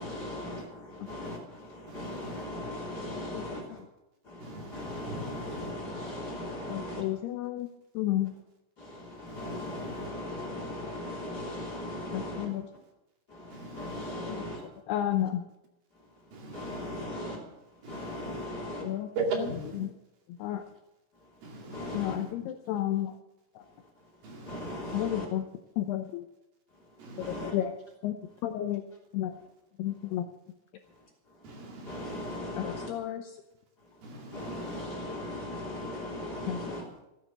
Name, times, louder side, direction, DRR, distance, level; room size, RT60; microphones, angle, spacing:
voice 1, 0.0-3.8 4.3-7.0 8.8-12.5 13.3-14.6 16.5-17.4 17.9-18.9 21.7-22.2 24.5-25.2 27.2-27.5 31.9-32.9 34.3-36.8, left 1 dB, 25° left, 3.0 m, -38 dB
voice 2, 1.9-2.4 4.4-5.7 9.3-10.1 13.5-14.1 16.3-17.0 17.8-18.5 19.2-19.9 21.4-22.0 24.2-25.0 27.0-27.5 31.4-32.4 34.0-34.8, right 3 dB, 55° right, 3.8 m, -40 dB
voice 3, 3.1-3.8 6.7-7.7 7.9-8.3 12.1-12.7 14.3-14.5 14.9-15.5 17.0-17.1 18.5-19.9 20.3-20.6 21.9-23.2 23.6-23.7 24.9-25.5 25.8-26.3 27.2-27.7 28.0-28.2 28.4-28.8 29.1-29.4 29.8-30.3 32.6-33.4 36.5-36.9, left 12 dB, 80° left, 2.4 m, -32 dB
15.5 x 9.9 x 7.5 m
omnidirectional pair, 5.5 m